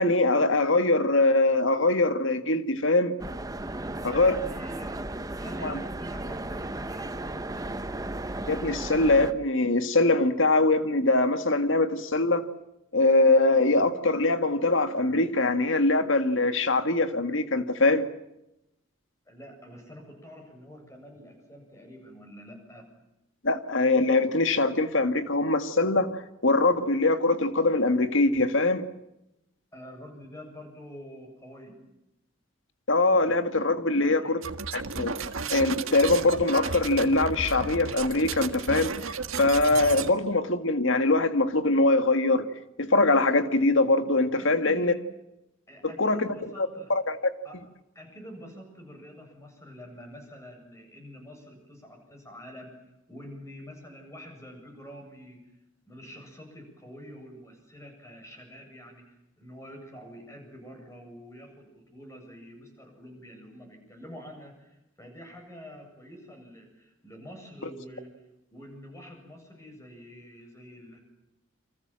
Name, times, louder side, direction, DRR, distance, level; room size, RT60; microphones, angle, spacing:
voice 1, 0.0-3.1 4.0-4.4 5.6-5.8 8.5-12.5 12.9-18.1 23.4-28.9 32.9-34.4 34.7-35.2 35.5-38.9 39.4-42.5 42.8-44.9 46.0-46.3 46.6-47.3, left 2 dB, 70° left, 2.0 m, -23 dB
sound 1, 3.2-9.3, right 1 dB, 15° right, 1.0 m, -35 dB
voice 2, 3.7-7.8 19.3-22.9 29.7-31.8 33.9-34.4 44.3-45.0 45.7-46.9 47.4-47.6 47.9-52.8 53.1-55.4 55.9-68.1 68.5-71.0, equal, 15° left, 8.0 m, -46 dB
sound 2, 34.4-40.1, right 5 dB, 85° right, 1.7 m, -34 dB
29.5 x 25.0 x 7.7 m
head